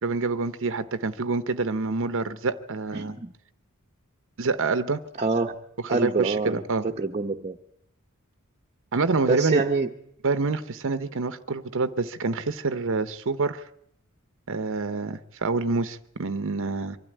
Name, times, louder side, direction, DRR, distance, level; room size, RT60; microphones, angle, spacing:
voice 1, 0.0-3.2 4.4-5.0 5.9-6.9 8.9-9.6 10.2-13.7 14.5-17.0, right 3 dB, 60° right, 12 dB, 0.8 m, -27 dB
voice 2, 2.9-3.3 5.2-5.5 5.9-7.6 9.3-9.9, right 3 dB, 30° right, 1 dB, 0.9 m, -26 dB
24.0 x 12.5 x 9.9 m, 0.77 s
head